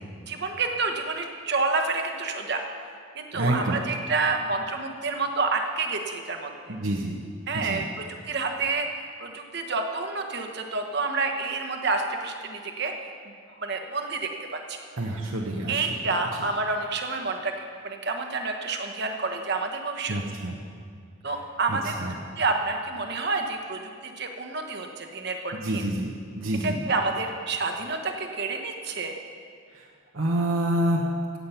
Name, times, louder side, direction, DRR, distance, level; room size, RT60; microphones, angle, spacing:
voice 1, 0.3-2.6 3.1-6.5 7.5-8.9 9.2-12.9 13.5-14.8 15.7-20.2 21.2-21.9 22.4-25.9 26.6-29.2, right 3 dB, 55° right, 4 dB, 1.2 m, -29 dB
voice 2, 3.3-3.8 6.7-7.2 7.5-7.9 15.0-15.9 20.1-20.5 21.7-22.1 25.5-26.8 29.7-29.9 30.1-31.1, right 1 dB, 75° right, -2 dB, 1.1 m, -28 dB
16.5 x 8.5 x 5.7 m, 2.2 s
head